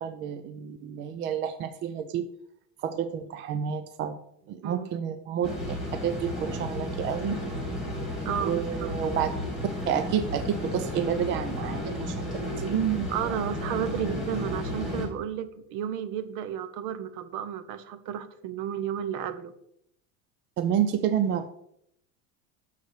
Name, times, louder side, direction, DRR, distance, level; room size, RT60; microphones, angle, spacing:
voice 1, 0.0-2.3 2.8-4.2 4.5-5.8 6.0-7.4 8.4-9.3 9.9-13.4 20.6-21.5, right 9 dB, 30° right, 9 dB, 0.4 m, -29 dB
sound 1, 5.4-15.1, left 1 dB, ahead, 2.1 m, -33 dB
voice 2, 8.2-8.9 13.1-19.5, right 9 dB, 50° right, 13 dB, 0.9 m, -33 dB
9.5 x 6.7 x 4.7 m, 0.74 s
cardioid pair, 170°, 38 cm